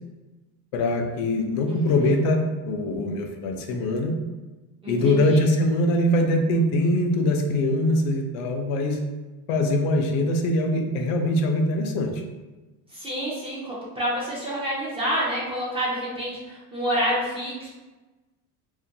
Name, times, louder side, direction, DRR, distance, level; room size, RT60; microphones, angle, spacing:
voice 1, 0.7-4.1 4.9-9.0 9.5-12.2, left 1 dB, 85° left, 4 dB, 0.5 m, -23 dB
voice 2, 1.7-2.1 4.8-5.4 12.9-17.7, equal, 15° right, -7 dB, 0.3 m, -28 dB
2.5 x 2.1 x 2.6 m, 1.2 s
cardioid pair, 155°, 39 cm